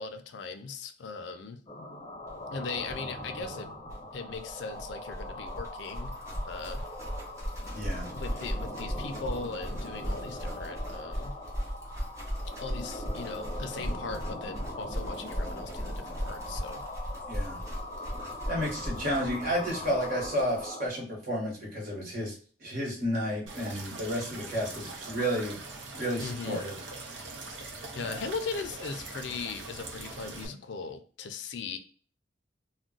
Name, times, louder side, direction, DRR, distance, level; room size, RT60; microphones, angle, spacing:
voice 1, 0.0-1.6 2.5-3.8 4.1-6.2 6.5-6.8 8.1-11.3 12.6-16.8 26.2-26.6 27.9-31.8, left 4 dB, 70° left, 8 dB, 0.4 m, -38 dB
sound 1, 1.7-20.9, left 1 dB, 30° left, 0.6 m, -41 dB
sound 2, 2.3-2.4 2.6-2.7 2.8-20.7, equal, 15° right, 0.8 m, -38 dB
voice 2, 7.7-8.1 17.3-17.6 18.5-22.3 22.6-25.6 25.9-26.7 28.0-28.2, equal, 50° right, -3 dB, 1.2 m, -31 dB
sound 3, 23.5-30.5, right 3 dB, 85° right, 0.6 m, -42 dB
2.4 x 2.1 x 3.8 m, 0.41 s
head